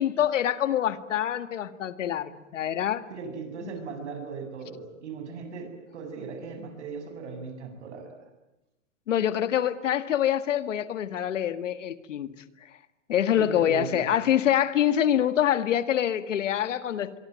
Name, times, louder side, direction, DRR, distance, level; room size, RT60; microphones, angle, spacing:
voice 1, 0.0-3.0 3.6-3.7 9.1-12.3 13.1-17.2, left 10 dB, 75° left, 13 dB, 1.9 m, -25 dB
voice 2, 3.1-8.2 13.3-14.1, right 5 dB, 65° right, 6 dB, 7.6 m, -38 dB
25.0 x 24.0 x 9.1 m, 0.92 s
hypercardioid pair, 165°, 38 cm